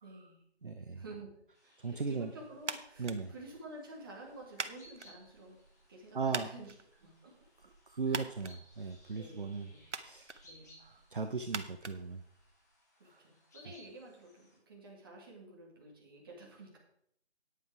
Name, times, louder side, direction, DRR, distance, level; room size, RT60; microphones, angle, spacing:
voice 1, 0.0-0.4 1.0-1.3 1.6-5.6 5.9-6.7 7.0-7.4 8.1-8.2 9.2-9.8 10.4-10.9 13.0-16.8, right 2 dB, 20° right, -2 dB, 2.0 m, -51 dB
voice 2, 0.6-1.0 1.8-2.3 3.0-3.3 6.1-6.5 7.9-9.7 10.0-10.3 10.8-12.2 13.1-13.2, right 4 dB, 50° right, 7 dB, 0.7 m, -37 dB
sound 1, 1.5-14.6, left 1 dB, 15° left, 1.6 m, -64 dB
sound 2, 2.6-12.8, right 4 dB, 85° right, 1.1 m, -46 dB
9.7 x 8.6 x 4.8 m, 0.69 s
figure-of-eight pair, 165°, 35 cm